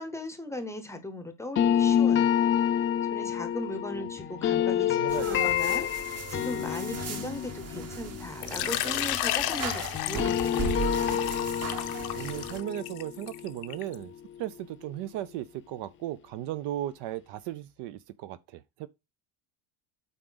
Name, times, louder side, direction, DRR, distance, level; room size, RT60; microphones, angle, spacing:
voice 1, 0.0-2.4 2.8-10.8, left 1 dB, 5° left, 0.8 m, -38 dB
sound 1, 1.5-9.6 9.9-14.9, left 9 dB, 25° left, 0.4 m, -29 dB
voice 2, 4.9-5.5 11.8-14.1 14.4-18.9, right 13 dB, 55° right, 0.6 m, -36 dB
sound 2, 5.1-12.6, right 6 dB, 30° right, 1.1 m, -38 dB
Water / Liquid, 8.4-14.0, left 15 dB, 50° left, 0.7 m, -33 dB
8.2 x 4.9 x 3.9 m
cardioid pair, 175°, 49 cm